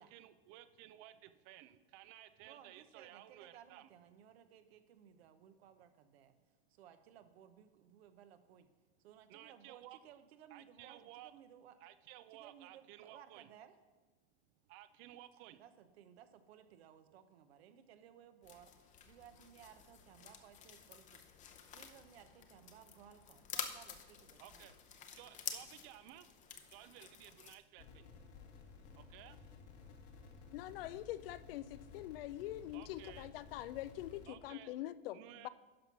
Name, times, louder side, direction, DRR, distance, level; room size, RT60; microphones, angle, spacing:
voice 1, 0.0-3.9 9.3-10.0 10.5-11.3 11.8-13.5 14.7-15.6 24.4-24.7 25.1-26.3 26.7-28.1 29.1-29.3 32.7-33.3 34.3-34.7 35.1-35.5, right 14 dB, 35° right, 13 dB, 0.5 m, -56 dB
voice 2, 2.4-6.4 6.7-8.7 9.0-11.8 12.3-13.7 15.1-15.2 15.5-21.2 21.7-24.7, right 9 dB, 70° right, 10 dB, 1.0 m, -60 dB
sound 1, 18.4-27.5, left 8 dB, 20° left, 0.7 m, -49 dB
sound 2, 27.8-34.3, left 4 dB, 80° left, 2.0 m, -56 dB
voice 3, 30.5-35.5, left 14 dB, 60° left, 16 dB, 0.5 m, -44 dB
11.5 x 4.5 x 5.9 m, 1.2 s
supercardioid pair, 135°, 33 cm